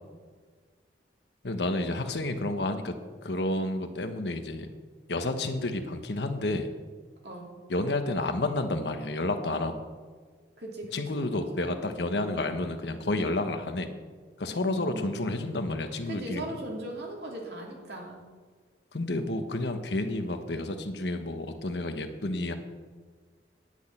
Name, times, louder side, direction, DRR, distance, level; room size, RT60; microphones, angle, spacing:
voice 1, 1.4-2.9 3.2-4.7 5.1-6.7 7.7-9.8 10.9-13.9 14.4-16.4 18.9-22.5, left 2 dB, 70° left, 7 dB, 1.1 m, -30 dB
voice 2, 10.6-11.7 14.5-15.2 16.1-18.2, right 1 dB, 65° right, -1 dB, 2.9 m, -39 dB
10.0 x 6.3 x 8.8 m, 1.5 s
head